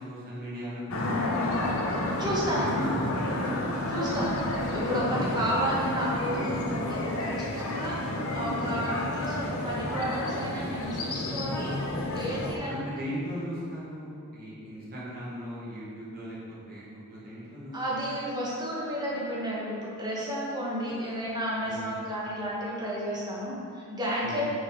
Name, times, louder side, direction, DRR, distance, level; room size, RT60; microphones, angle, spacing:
voice 1, 0.0-1.4 2.6-3.8 4.1-4.3 5.1-5.3 12.3-12.4 12.7-16.4 16.7-17.7 21.7-21.9 24.2-24.4, equal, 40° right, -7 dB, 1.5 m, -38 dB
sound 1, 0.9-12.5, left 1 dB, 65° left, 0.7 m, -30 dB
voice 2, 2.2-2.7 3.9-4.3 4.7-11.8 12.1-12.7 17.7-24.5, equal, 20° right, -6 dB, 1.4 m, -32 dB
6.6 x 5.5 x 3.8 m, 2.5 s
head